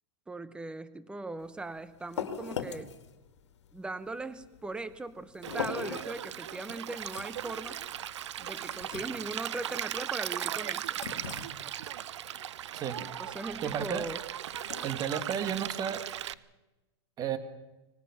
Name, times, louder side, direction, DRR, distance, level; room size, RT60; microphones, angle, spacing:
voice 1, 0.3-2.9 3.7-7.8 8.4-11.0 13.0-14.2, right 3 dB, 5° right, 14 dB, 1.0 m, -39 dB
sound 1, 1.4-16.4, left 7 dB, 90° left, 2.1 m, -43 dB
Stream, 5.4-16.3, right 11 dB, 85° right, 0.7 m, -38 dB
voice 2, 13.6-14.1 14.8-16.0 17.2-17.4, right 8 dB, 25° right, 10 dB, 1.7 m, -32 dB
25.0 x 19.5 x 5.9 m, 1.1 s
supercardioid pair, 140°, 14 cm